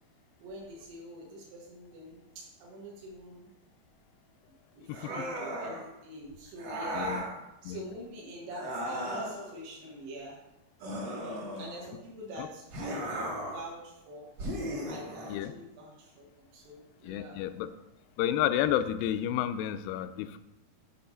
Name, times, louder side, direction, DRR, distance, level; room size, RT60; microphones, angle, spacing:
voice 1, 0.4-3.5 4.7-7.2 7.6-10.4 11.0-14.3 14.8-17.4, right 1 dB, 80° right, -3 dB, 3.5 m, -45 dB
sound 1, 4.9-5.9 6.6-7.4 8.5-9.5 10.8-11.9 12.7-13.7 14.4-15.4, right 1 dB, 55° right, 2.1 m, -36 dB
voice 2, 17.0-17.7 18.2-20.4, left 11 dB, 85° left, 10 dB, 2.1 m, -30 dB
10.0 x 3.8 x 5.5 m, 0.91 s
omnidirectional pair, 4.7 m